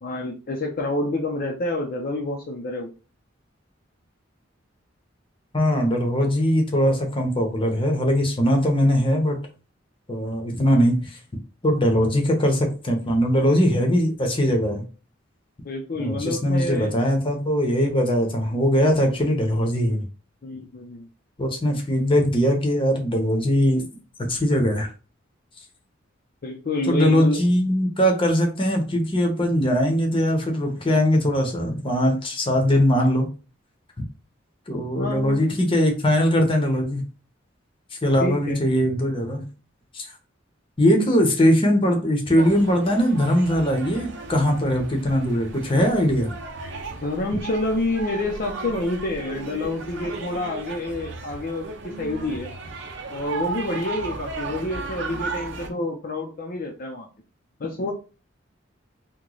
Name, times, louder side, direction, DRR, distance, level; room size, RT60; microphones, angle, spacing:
voice 1, 0.0-2.9 15.6-16.9 20.4-21.1 26.4-27.4 35.0-35.6 38.2-38.6 47.0-52.5 53.1-57.1 57.6-57.9, left 2 dB, 50° left, 1 dB, 0.5 m, -28 dB
voice 2, 5.5-9.4 10.1-11.2 11.6-14.8 16.0-20.0 21.4-23.9 24.3-24.9 26.9-33.3 34.7-37.0 38.0-39.4 39.9-40.1 40.8-46.3, equal, 25° left, 2 dB, 0.8 m, -21 dB
sound 1, 42.4-55.7, right 3 dB, 65° right, 0.7 m, -35 dB
3.0 x 2.1 x 3.8 m, 0.34 s
head